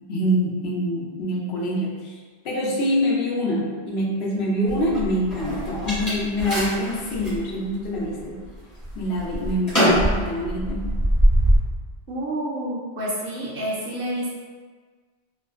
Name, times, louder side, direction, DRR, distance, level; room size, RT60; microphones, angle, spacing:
voice 1, 0.1-2.2 2.4-8.4 8.9-11.0, equal, 75° left, -4 dB, 0.9 m, -25 dB
sound 1, 4.7-7.4 7.9-8.5 8.8-11.6, equal, 20° left, 0.8 m, -22 dB
voice 2, 12.1-14.4, right 1 dB, 65° right, -5 dB, 0.7 m, -29 dB
2.5 x 2.2 x 2.3 m, 1.5 s
omnidirectional pair, 1.1 m